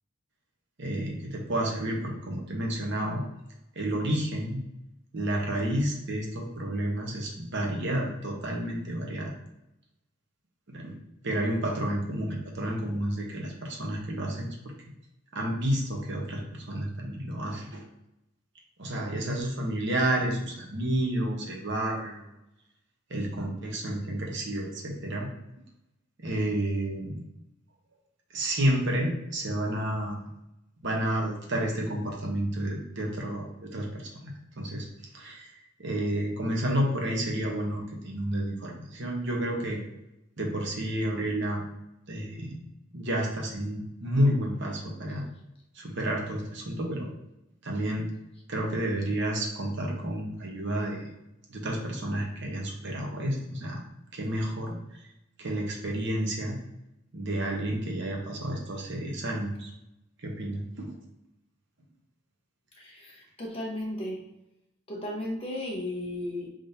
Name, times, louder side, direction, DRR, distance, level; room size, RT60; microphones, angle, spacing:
voice 1, 0.8-3.2 3.7-4.6 5.1-9.3 10.7-10.9 11.2-14.5 15.3-17.8 18.8-22.3 23.1-25.3 26.2-27.2 28.3-30.2 30.8-34.9 35.1-35.5 35.8-39.8 40.4-41.6 42.1-42.6 42.9-45.2 45.7-47.1 47.6-48.1 48.5-51.1 51.5-53.8 54.1-55.0 55.4-56.6 57.1-59.7 60.2-61.0, right 1 dB, 60° right, 0 dB, 1.0 m, -30 dB
voice 2, 62.8-64.2 64.9-66.5, left 1 dB, 25° left, -3 dB, 1.1 m, -35 dB
5.2 x 3.7 x 2.7 m, 0.89 s
head